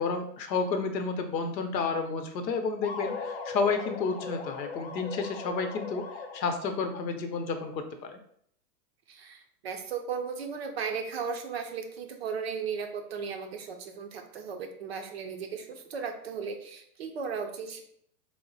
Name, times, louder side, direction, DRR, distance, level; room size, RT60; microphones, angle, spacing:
voice 1, 0.0-6.0 6.3-8.1, left 4 dB, 90° left, 6 dB, 0.8 m, -31 dB
sound 1, 2.8-6.7, left 4 dB, 45° left, 0.4 m, -38 dB
voice 2, 9.1-17.8, right 6 dB, 40° right, 5 dB, 0.4 m, -36 dB
3.5 x 2.1 x 3.8 m, 0.66 s
hypercardioid pair, 150°, 49 cm